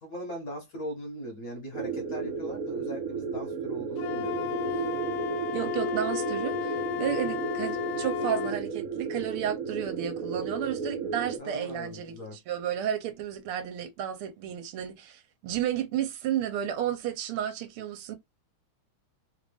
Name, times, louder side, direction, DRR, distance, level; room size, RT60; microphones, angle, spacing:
voice 1, 0.0-4.4 4.7-4.8 11.4-12.4, equal, 50° left, 1.4 m, -39 dB
sound 1, 1.7-11.4, right 5 dB, 60° right, 0.9 m, -33 dB
Wind instrument woodwind instrument, 4.0-8.6, left 15 dB, 80° left, 1.5 m, -33 dB
voice 2, 5.5-18.1, right 10 dB, 80° right, 1.6 m, -32 dB
3.6 x 2.5 x 3.4 m
omnidirectional pair, 2.4 m